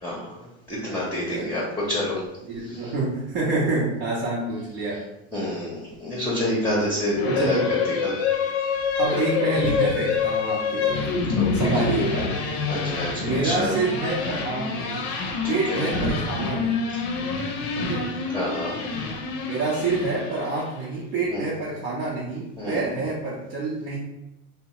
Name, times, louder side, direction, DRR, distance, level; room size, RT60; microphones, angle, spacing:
voice 1, 0.0-0.3 0.7-2.2 2.6-2.9 5.3-8.1 11.3-11.9 12.7-13.7 15.4-15.8 18.3-18.8 21.3-21.4 22.6-22.8, left 1 dB, 5° left, -6 dB, 0.7 m, -28 dB
voice 2, 2.4-5.0 7.2-7.7 9.0-11.1 11.5-12.3 13.2-15.1 15.4-16.8 17.8-18.1 19.4-24.0, right 3 dB, 65° right, -7 dB, 0.8 m, -27 dB
sound 1, 7.2-20.8, left 5 dB, 45° left, 0.5 m, -27 dB
2.9 x 2.1 x 2.9 m, 0.90 s
supercardioid pair, 110°, 36 cm